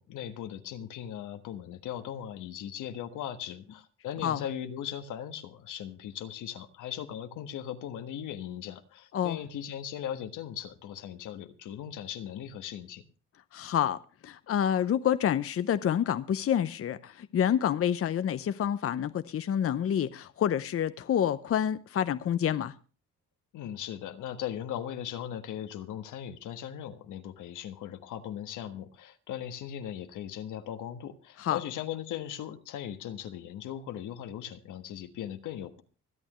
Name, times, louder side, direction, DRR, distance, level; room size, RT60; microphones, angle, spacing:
voice 1, 0.0-13.0 23.5-35.8, left 10 dB, 85° left, 1.5 m, -38 dB
voice 2, 13.5-22.7 31.4-31.6, left 9 dB, 50° left, 0.7 m, -28 dB
25.0 x 8.9 x 3.1 m
cardioid pair, 90°, 30 cm